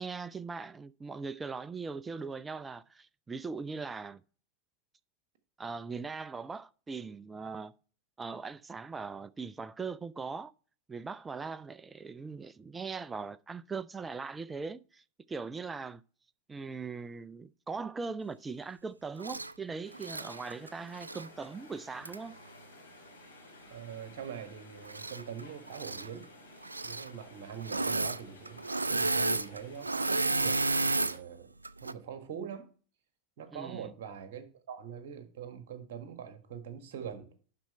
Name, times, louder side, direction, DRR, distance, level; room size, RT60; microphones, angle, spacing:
voice 1, 0.0-4.2 5.6-7.7 8.2-10.5 10.9-16.0 16.5-22.4 33.5-33.9, right 4 dB, 15° right, 0.4 m, -40 dB
Engine / Mechanisms, 19.2-19.5 19.9-21.3 22.0-22.2 24.8-25.4 25.7-26.1 26.6-27.1 27.6-28.2 28.4-31.2 31.6-31.9, right 3 dB, 85° right, 0.3 m, -31 dB
sound 1, 19.8-31.2, left 2 dB, 80° left, 2.7 m, -55 dB
voice 2, 23.7-26.3 26.8-28.6 28.9-30.6 30.9-31.5 31.8-32.7 33.4-37.3, right 8 dB, 55° right, 1.5 m, -43 dB
11.5 x 4.3 x 4.2 m
figure-of-eight pair, 90°, 0 cm